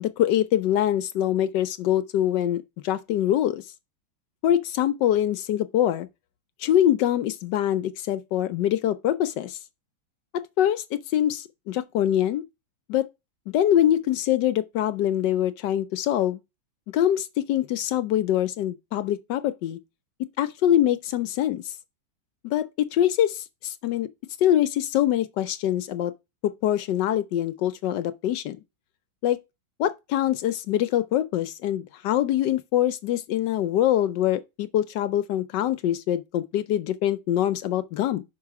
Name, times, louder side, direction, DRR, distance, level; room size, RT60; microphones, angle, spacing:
voice 1, 0.0-3.6 4.4-6.1 6.6-9.6 10.6-12.4 12.9-13.1 13.5-16.4 16.9-19.8 20.4-21.7 22.4-24.1 24.4-26.1 26.4-28.6 29.2-29.4 29.8-38.2, left 11 dB, 75° left, 1.0 m, -24 dB
6.1 x 4.8 x 4.7 m
omnidirectional pair, 2.2 m